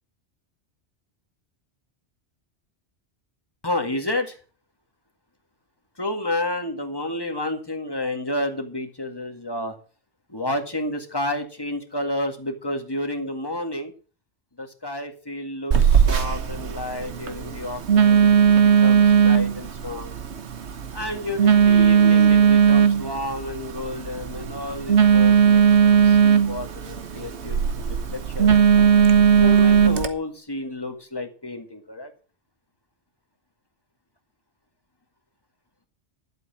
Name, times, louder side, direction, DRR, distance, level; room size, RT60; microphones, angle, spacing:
voice 1, 3.6-4.4 6.0-9.8 10.3-13.9 14.6-20.1 20.9-28.6 29.4-32.1, left 1 dB, 20° left, 5 dB, 2.0 m, -30 dB
Telephone, 15.7-30.1, right 7 dB, 75° right, 1.4 m, -18 dB
12.0 x 8.0 x 6.0 m, 0.37 s
omnidirectional pair, 1.2 m